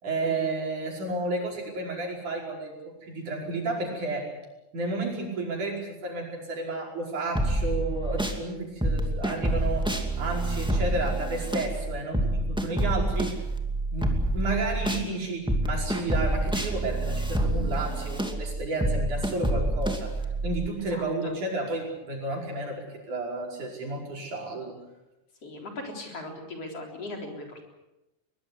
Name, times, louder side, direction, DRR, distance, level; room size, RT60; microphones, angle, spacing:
voice 1, 0.0-4.3 4.7-9.9 10.2-13.4 13.9-20.1 20.4-24.8, right 2 dB, 70° right, 0 dB, 6.7 m, -32 dB
sound 1, 7.3-8.4 8.8-15.1 15.5-20.7, right 1 dB, ahead, 1.9 m, -27 dB
voice 2, 20.9-21.3 25.4-27.7, left 2 dB, 50° left, 2 dB, 4.8 m, -39 dB
22.0 x 21.5 x 8.1 m, 0.95 s
omnidirectional pair, 3.6 m